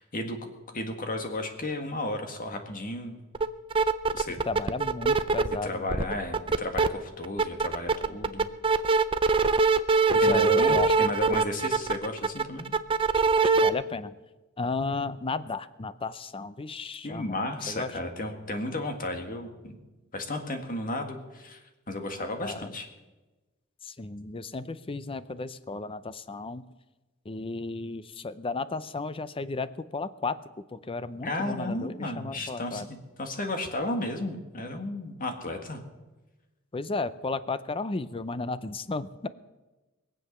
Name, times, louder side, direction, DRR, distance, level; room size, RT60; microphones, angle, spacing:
voice 1, 0.0-3.2 4.1-4.4 5.6-8.5 10.2-12.7 17.0-19.8 20.1-21.6 21.9-22.9 31.2-35.8, left 1 dB, 40° left, 5 dB, 1.8 m, -34 dB
sound 1, 3.3-3.5 3.7-5.6 5.9-6.9 7.2-13.7, right 4 dB, 25° right, 0.5 m, -22 dB
voice 2, 4.5-5.9 10.1-10.9 13.4-14.1 14.6-17.4 17.7-17.9 22.4-22.7 23.8-26.6 27.3-30.4 30.7-32.9 36.7-39.3, left 3 dB, 25° left, 15 dB, 0.5 m, -34 dB
22.0 x 7.9 x 6.7 m, 1.1 s
head